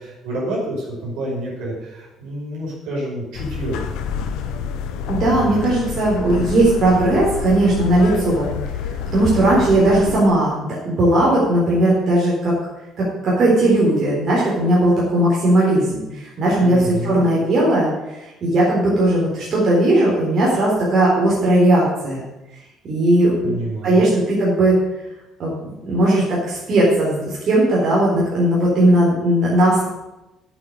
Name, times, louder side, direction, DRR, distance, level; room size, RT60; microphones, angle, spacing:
voice 1, 0.0-3.8 16.6-17.3 23.4-24.1, right 1 dB, 60° right, -4 dB, 5.2 m, -28 dB
sound 1, 3.3-10.2, left 7 dB, 65° left, 1.0 m, -28 dB
voice 2, 5.1-8.5 9.1-12.6 13.0-22.2 22.9-23.5 23.8-24.7 25.4-25.5 25.9-29.9, right 1 dB, 45° right, -6 dB, 4.0 m, -17 dB
8.7 x 8.6 x 8.2 m, 1.0 s
figure-of-eight pair, 50°, 0 cm